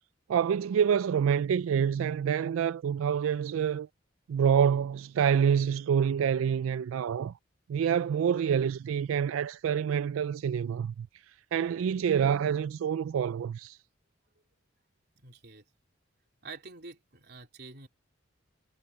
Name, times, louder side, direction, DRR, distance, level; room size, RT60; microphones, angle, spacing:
voice 1, 0.3-3.9 4.3-7.3 7.7-13.8, right 7 dB, 90° right, 0.3 m, -27 dB
voice 2, 15.2-15.6 16.4-17.9, right 4 dB, 55° right, 3.5 m, -47 dB
head